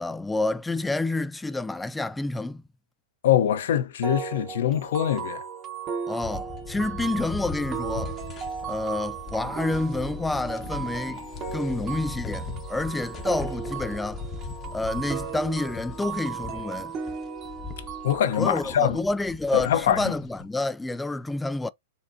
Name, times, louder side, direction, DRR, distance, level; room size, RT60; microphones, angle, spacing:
voice 1, 0.0-2.6 6.1-8.2 8.6-11.3 11.5-14.2 14.7-17.0 18.4-21.7, left 2 dB, 5° left, 0.3 m, -29 dB
voice 2, 3.2-5.4 18.0-19.0 19.5-20.0, left 10 dB, 70° left, 0.7 m, -23 dB
sound 1, 4.0-18.8, right 6 dB, 30° right, 1.0 m, -36 dB
sound 2, 6.2-20.4, left 4 dB, 25° left, 0.8 m, -39 dB
4.2 x 3.4 x 2.6 m
hypercardioid pair, 135°, 0 cm